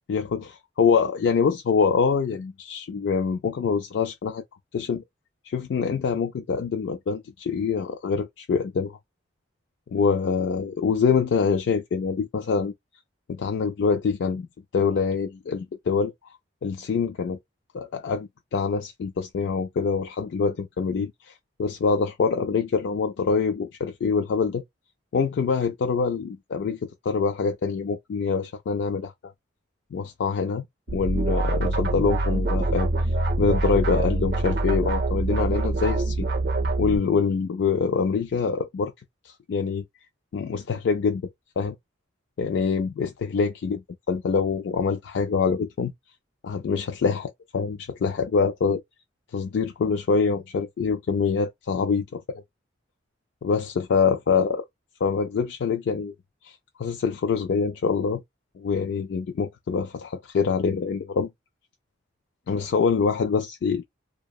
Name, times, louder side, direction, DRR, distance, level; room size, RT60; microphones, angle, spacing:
voice 1, 0.1-4.4 4.7-5.0 5.4-9.0 9.9-12.7 13.3-14.5 14.7-16.1 16.6-17.4 17.7-21.3 21.6-24.6 25.1-26.8 27.1-29.1 29.9-30.6 30.9-32.9 33.4-36.3 36.8-38.9 39.3-39.8 40.3-41.2 41.6-41.7 42.4-43.8 44.1-45.9 46.4-48.8 49.3-52.4 53.4-54.6 55.0-56.1 56.4-58.2 58.6-61.3 62.5-63.8, left 5 dB, 65° left, 0.3 m, -25 dB
sound 1, 30.9-37.0, right 2 dB, 55° right, 0.5 m, -25 dB
2.8 x 2.0 x 2.2 m
head